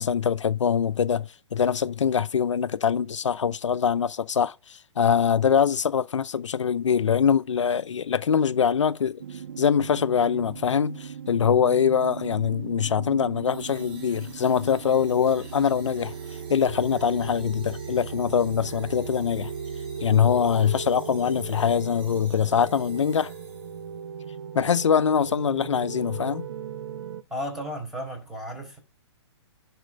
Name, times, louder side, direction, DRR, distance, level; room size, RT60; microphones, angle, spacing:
voice 1, 0.0-9.2 9.6-16.1 16.5-19.5 20.0-23.3 24.5-26.5, left 7 dB, 90° left, 0.6 m, -23 dB
sound 1, 9.2-27.2, right 7 dB, 65° right, 1.0 m, -38 dB
sound 2, 13.5-24.0, right 4 dB, 30° right, 4.0 m, -51 dB
voice 2, 27.3-28.8, equal, ahead, 4.5 m, -34 dB
10.5 x 4.3 x 6.3 m
hypercardioid pair, 140°, 15 cm